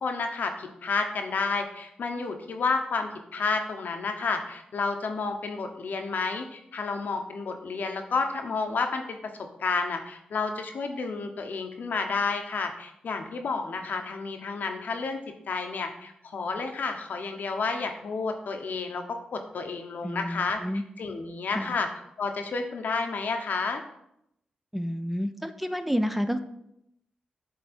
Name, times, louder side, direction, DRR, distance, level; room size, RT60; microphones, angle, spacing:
voice 1, 0.0-9.2 9.6-15.2 15.5-19.0 19.3-20.6 21.0-21.9 22.2-23.8, left 4 dB, 70° left, 5 dB, 0.8 m, -30 dB
voice 2, 20.0-20.8 21.5-21.8 24.7-26.4, equal, 5° right, 9 dB, 0.5 m, -30 dB
7.7 x 3.4 x 4.3 m, 0.78 s
cardioid pair, 60°, 3 cm